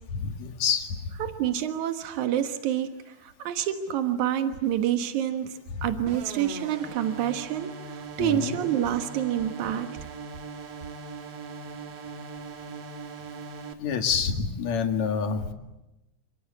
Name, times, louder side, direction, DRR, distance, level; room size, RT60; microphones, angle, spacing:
voice 1, 0.2-1.0 5.7-5.9 8.2-8.6 13.8-15.5, left 6 dB, 70° left, 5 dB, 3.3 m, -27 dB
voice 2, 1.2-9.9, right 10 dB, 80° right, 7 dB, 2.8 m, -28 dB
sound 1, 6.1-13.7, right 4 dB, 60° right, 2.7 m, -40 dB
28.5 x 24.0 x 8.4 m, 0.97 s
omnidirectional pair, 3.4 m